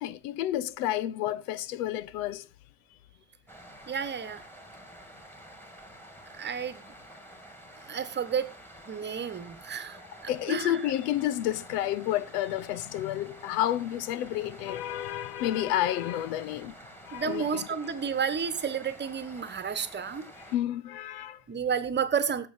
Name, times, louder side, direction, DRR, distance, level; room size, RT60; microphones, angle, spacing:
voice 1, 0.0-2.5 10.3-16.7 17.0-17.6 20.5-21.4, left 12 dB, 75° left, 0.9 m, -30 dB
sound 1, 3.5-20.6, equal, 5° left, 2.6 m, -49 dB
voice 2, 3.9-4.4 6.4-6.9 7.9-8.5 8.8-10.8 17.1-20.3 21.5-22.5, right 7 dB, 20° right, 1.3 m, -31 dB
16.5 x 6.8 x 4.3 m
supercardioid pair, 110°, 48 cm